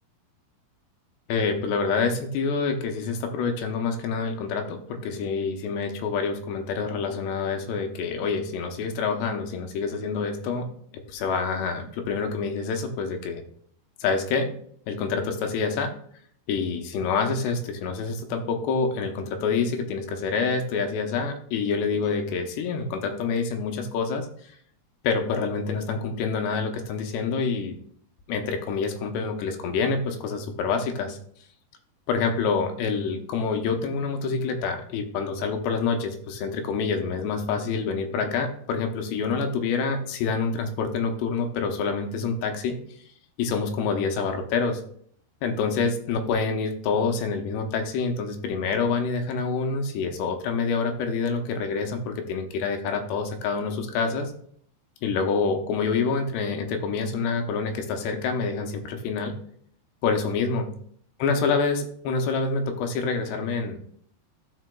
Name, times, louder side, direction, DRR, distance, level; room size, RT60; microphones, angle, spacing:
voice 1, 1.3-10.7 11.1-13.4 14.0-14.5 14.9-15.9 16.5-24.3 25.0-27.8 28.3-31.1 32.1-42.8 43.4-44.8 45.4-54.3 55.0-59.4 60.0-60.7 61.2-63.8, left 5 dB, 90° left, 5 dB, 3.1 m, -27 dB
14.5 x 5.1 x 2.2 m, 0.63 s
omnidirectional pair, 4.7 m